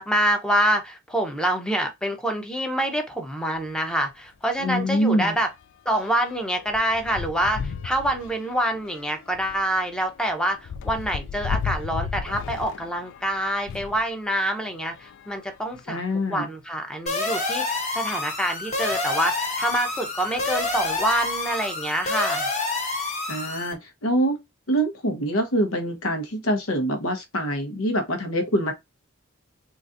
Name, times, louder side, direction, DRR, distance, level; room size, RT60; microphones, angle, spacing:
voice 1, 0.0-5.5 5.9-16.0 16.3-22.5, right 1 dB, 5° left, 0.7 m, -26 dB
sound 1, 3.6-3.7 4.1-4.3 4.6-14.0 14.8-16.1 16.8-16.9 17.1-17.2 18.9-19.0 19.7-20.0 20.3-21.6, left 6 dB, 60° left, 0.3 m, -36 dB
voice 2, 4.6-5.4 15.9-16.5 23.3-24.4 24.7-28.7, equal, 80° left, 0.9 m, -25 dB
sound 2, 17.1-23.7, left 3 dB, 35° left, 1.1 m, -28 dB
3.8 x 2.5 x 2.6 m
head